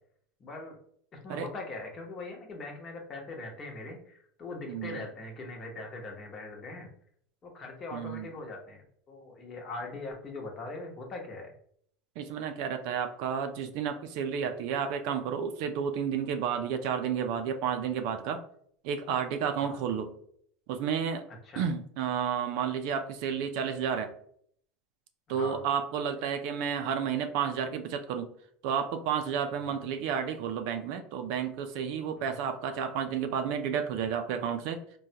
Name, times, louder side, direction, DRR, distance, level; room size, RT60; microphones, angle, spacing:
voice 1, 0.4-0.8 1.1-6.9 7.4-11.5 19.6-19.8 21.4-21.6 25.3-25.6 29.7-29.8 32.2-32.3, left 2 dB, 35° left, 1 dB, 0.9 m, -41 dB
voice 2, 4.7-5.0 7.9-8.3 12.2-18.4 18.8-20.1 20.7-21.2 21.6-24.1 25.3-28.3 28.6-34.8, right 7 dB, 65° right, 7 dB, 0.4 m, -31 dB
3.5 x 2.2 x 2.8 m, 0.64 s
supercardioid pair, 105°, 0 cm